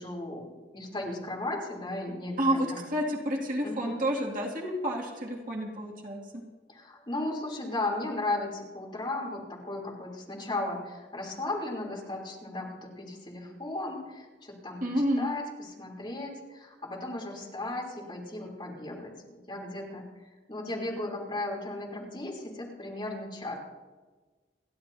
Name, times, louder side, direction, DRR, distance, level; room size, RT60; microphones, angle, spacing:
voice 1, 0.0-2.8 3.6-4.0 6.7-14.8 15.2-20.1 20.5-23.6, left 2 dB, 25° left, -3 dB, 3.4 m, -36 dB
voice 2, 2.4-6.4 14.8-15.3, equal, 45° right, -1 dB, 2.4 m, -30 dB
29.5 x 11.5 x 2.8 m, 1.3 s
head